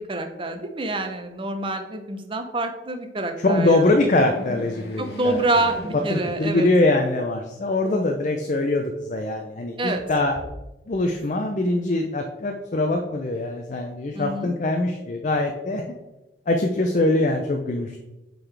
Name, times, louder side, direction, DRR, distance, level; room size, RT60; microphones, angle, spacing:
voice 1, 0.0-3.8 4.5-4.6 5.0-6.7 9.8-10.0 14.1-14.5, right 2 dB, 30° right, 6 dB, 0.7 m, -27 dB
voice 2, 3.4-5.4 6.1-10.4 10.9-15.8 16.5-18.0, left 2 dB, 45° left, 3 dB, 0.5 m, -23 dB
sound 1, 3.5-7.1 7.5-7.6 8.7-9.5, equal, 65° left, 1.4 m, -40 dB
9.0 x 3.9 x 3.3 m, 1.0 s
head